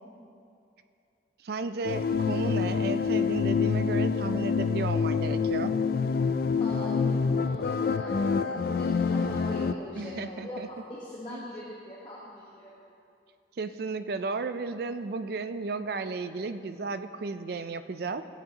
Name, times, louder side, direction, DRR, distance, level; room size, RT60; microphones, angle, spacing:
voice 1, 1.4-5.8 9.2-9.3 10.0-10.7 11.3-11.5 13.6-18.2, right 3 dB, 55° right, 11 dB, 0.4 m, -34 dB
sound 1, 1.8-9.7, left 5 dB, 50° left, 0.3 m, -27 dB
voice 2, 6.6-12.7, left 1 dB, 25° left, -6 dB, 1.2 m, -42 dB
15.0 x 9.5 x 2.9 m, 2.6 s
head